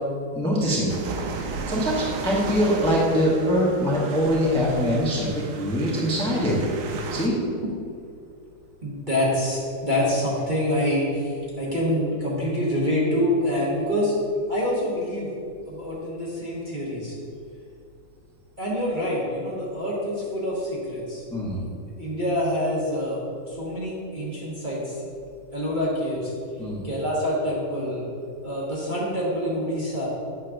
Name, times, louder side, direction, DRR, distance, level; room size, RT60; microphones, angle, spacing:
voice 1, 0.3-1.0 1.3-6.6 7.1-7.4 21.3-21.6 26.6-26.8, equal, 5° left, -6 dB, 1.0 m, -23 dB
sound 1, 0.9-7.3, right 4 dB, 70° right, 0.8 m, -34 dB
voice 2, 8.8-14.1 14.5-15.3 15.7-17.2 18.6-21.2 22.0-23.2 23.5-25.0 25.5-26.3 26.8-28.0 28.4-30.1, left 1 dB, 30° right, -7 dB, 1.2 m, -26 dB
8.5 x 3.2 x 6.2 m, 2.4 s
omnidirectional pair, 2.0 m